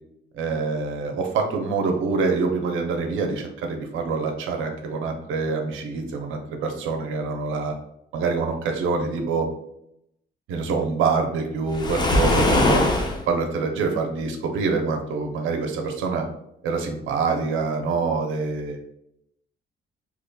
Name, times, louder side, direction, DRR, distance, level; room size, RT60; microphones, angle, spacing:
voice 1, 0.3-7.7 8.1-9.5 10.5-12.9 13.3-16.2 16.6-18.8, right 4 dB, 85° right, 3 dB, 0.6 m, -25 dB
Waves surf, 11.7-13.2, left 1 dB, 20° left, 0.6 m, -20 dB
3.8 x 2.9 x 2.2 m, 0.79 s
cardioid pair, 90°, 20 cm